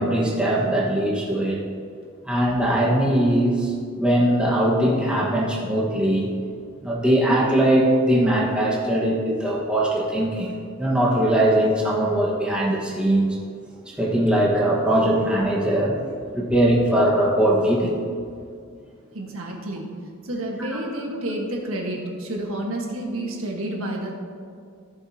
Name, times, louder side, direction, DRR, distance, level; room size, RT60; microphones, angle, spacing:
voice 1, 0.0-1.6 2.3-6.3 6.8-10.5 10.8-13.3 13.9-16.0 16.3-17.9 20.6-20.7, right 1 dB, 5° right, -4 dB, 1.4 m, -21 dB
voice 2, 19.1-19.8 20.2-24.1, right 1 dB, 80° right, 0 dB, 1.5 m, -29 dB
14.5 x 7.5 x 2.9 m, 2.2 s
head